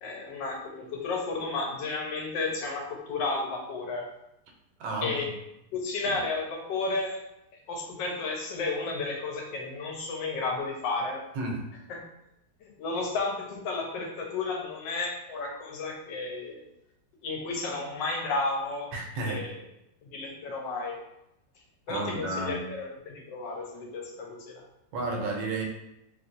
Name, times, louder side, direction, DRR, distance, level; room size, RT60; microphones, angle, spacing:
voice 1, 0.0-4.1 5.0-5.4 5.7-7.2 7.7-11.2 11.9-12.0 12.6-16.7 17.2-18.9 19.2-19.6 20.0-21.0 21.9-24.6, left 3 dB, 85° left, 1 dB, 1.4 m, -32 dB
voice 2, 4.8-5.1 6.0-6.2 11.4-11.6 18.9-19.5 21.9-22.6 24.9-25.6, right 2 dB, 85° right, 0 dB, 1.4 m, -32 dB
3.2 x 3.0 x 2.5 m, 0.85 s
omnidirectional pair, 1.9 m